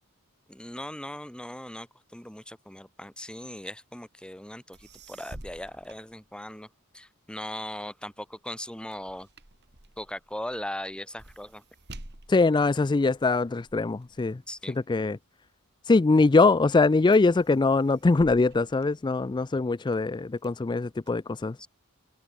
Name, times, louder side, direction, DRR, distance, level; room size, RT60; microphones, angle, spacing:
voice 1, 0.5-6.7 6.9-9.3 10.0-11.6 14.5-14.8 21.6-21.7, left 1 dB, 5° left, 2.3 m, -39 dB
sound 1, 4.5-4.6 4.7-6.8 7.3-15.9 16.5-16.8 17.1-19.6 20.1-21.1, right 1 dB, 50° right, 3.5 m, -50 dB
voice 2, 12.3-14.4 14.7-15.2 15.8-21.6, left 3 dB, 20° left, 0.4 m, -22 dB
open air
head